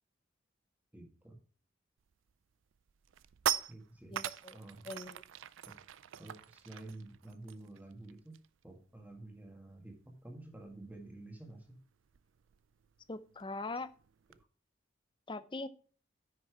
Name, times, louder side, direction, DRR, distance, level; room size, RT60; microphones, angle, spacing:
voice 1, 0.9-1.4 3.7-4.1 4.5-4.9 5.7-5.8 6.2-11.8, right 2 dB, 10° right, 3 dB, 1.8 m, -50 dB
sound 1, 2.1-2.3 2.7-8.6 8.9-9.1 9.4-14.4, right 10 dB, 85° right, 0.4 m, -42 dB
voice 2, 4.1-4.6 4.9-5.2 13.1-13.9 15.3-15.7, left 2 dB, 25° left, 14 dB, 0.5 m, -41 dB
9.8 x 5.9 x 4.7 m, 0.40 s
head